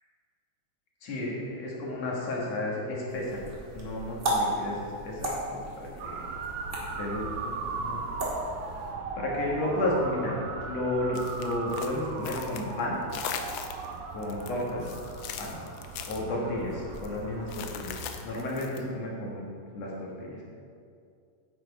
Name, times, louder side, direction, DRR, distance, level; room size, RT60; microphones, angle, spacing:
voice 1, 1.0-6.3 7.0-8.0 9.2-10.4 10.7-13.0 14.1-14.8 15.4-15.6 16.0-19.4 19.7-20.4, left 1 dB, 60° left, -3 dB, 2.7 m, -32 dB
sound 1, 3.1-8.9, right 1 dB, 30° right, 1.4 m, -35 dB
Motor vehicle (road) / Siren, 6.0-18.3, right 4 dB, 75° right, 2.2 m, -38 dB
sound 2, 11.1-12.8 13.1-13.9 14.2-16.2 16.9-17.1 17.5-18.8, left 8 dB, 85° left, 1.5 m, -39 dB
9.5 x 7.4 x 4.7 m, 2.4 s
omnidirectional pair, 3.5 m